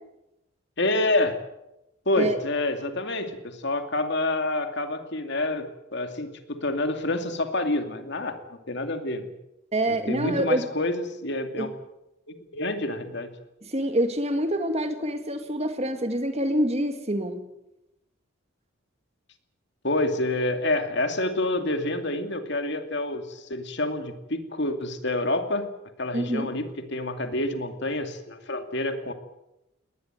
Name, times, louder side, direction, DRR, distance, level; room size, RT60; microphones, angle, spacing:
voice 1, 0.8-1.4 2.1-8.4 8.7-9.3 9.9-11.7 12.3-13.3 19.8-25.7 26.0-29.1, left 2 dB, 55° left, 7 dB, 2.5 m, -28 dB
voice 2, 9.7-10.7 11.6-11.7 13.6-17.5 26.1-26.5, right 1 dB, 30° right, 8 dB, 2.1 m, -26 dB
21.0 x 19.0 x 9.1 m, 0.90 s
head